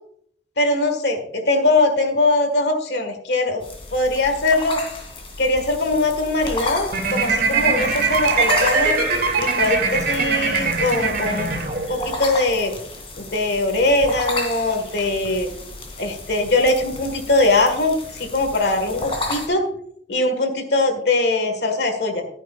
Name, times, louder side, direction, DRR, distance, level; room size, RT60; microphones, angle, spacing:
voice 1, 0.6-3.6 3.9-4.8 5.4-9.0 9.4-11.5 11.9-12.7 13.2-15.5 16.0-19.6 20.1-22.2, left 2 dB, 70° left, 6 dB, 1.7 m, -21 dB
sound 1, 3.6-19.5, left 2 dB, 35° left, 2.6 m, -33 dB
sound 2, 6.9-12.1, right 4 dB, 55° right, 2.4 m, -21 dB
16.0 x 9.2 x 2.4 m, 0.69 s
head